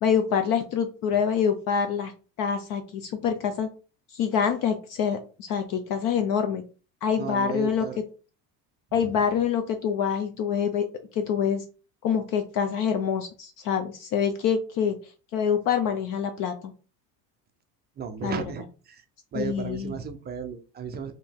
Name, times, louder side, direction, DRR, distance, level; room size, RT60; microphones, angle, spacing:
voice 1, 0.0-2.1 2.4-3.7 4.1-6.6 7.0-7.9 8.9-10.9 11.1-11.6 12.0-15.0 15.3-16.7 18.2-18.4 19.3-20.0, left 7 dB, 50° left, 6 dB, 0.6 m, -26 dB
voice 2, 7.2-8.0 9.1-9.2 18.0-19.0 19.3-21.1, right 6 dB, 25° right, 6 dB, 0.4 m, -34 dB
5.0 x 2.8 x 3.5 m, 0.36 s
cardioid pair, 155°, 41 cm